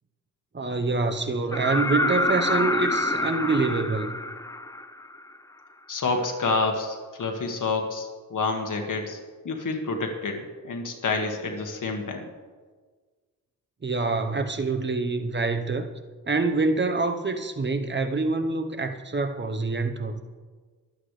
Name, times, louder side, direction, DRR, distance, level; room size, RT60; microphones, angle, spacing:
voice 1, 0.5-4.1 13.8-15.9 16.3-20.2, right 3 dB, 30° right, 7 dB, 1.0 m, -26 dB
sound 1, 1.5-5.3 7.2-7.3, left 2 dB, 10° left, 0.5 m, -27 dB
voice 2, 5.9-9.2 9.4-12.3, left 3 dB, 55° left, 3 dB, 1.8 m, -28 dB
24.0 x 8.3 x 3.3 m, 1.5 s
cardioid pair, 80°, 37 cm